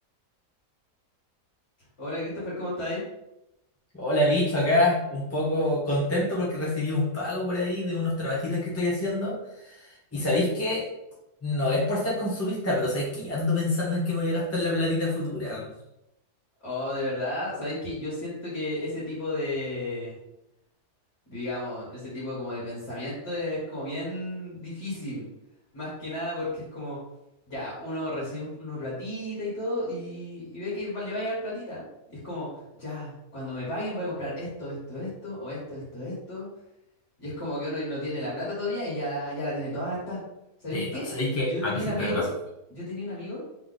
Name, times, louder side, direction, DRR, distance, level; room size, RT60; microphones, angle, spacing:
voice 1, 2.0-3.0 16.6-20.2 21.3-25.2 25.7-27.0 27.5-32.5 32.7-36.5 37.2-40.2 40.6-42.3 42.7-43.4, left 1 dB, 45° left, -8 dB, 2.1 m, -33 dB
voice 2, 3.9-9.4 9.6-10.9 11.4-15.7 40.7-42.2, left 1 dB, 15° left, -6 dB, 0.6 m, -26 dB
3.7 x 3.3 x 4.0 m, 0.88 s
omnidirectional pair, 1.8 m